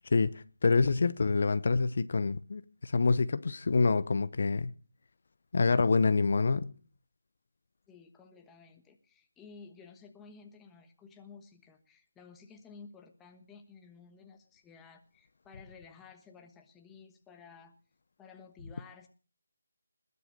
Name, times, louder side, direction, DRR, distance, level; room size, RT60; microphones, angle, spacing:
voice 1, 0.1-4.7 5.5-6.7, left 4 dB, 45° left, 0.8 m, -26 dB
voice 2, 7.9-17.7 18.2-19.1, left 5 dB, 5° left, 1.3 m, -54 dB
20.0 x 8.4 x 6.6 m
figure-of-eight pair, 170°, 0 cm